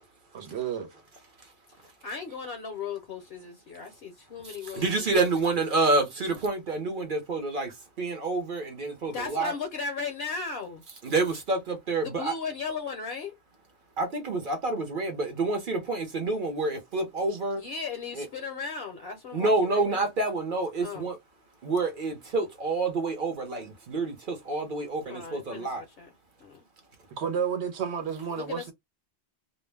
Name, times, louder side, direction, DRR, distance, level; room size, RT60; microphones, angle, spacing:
voice 1, 0.3-0.9 27.2-28.7, right 7 dB, 70° right, 1.0 m, -31 dB
voice 2, 1.8-5.0 5.3-5.4 9.1-10.8 12.0-13.3 17.6-20.1 20.8-21.1 25.1-26.1 26.4-26.6 28.3-28.7, left 5 dB, 65° left, 0.8 m, -36 dB
voice 3, 4.7-9.5 11.0-12.3 14.0-17.6 18.1-18.3 19.3-21.2 21.6-25.8, right 3 dB, 50° right, 0.8 m, -28 dB
2.4 x 2.0 x 3.2 m
omnidirectional pair, 1.2 m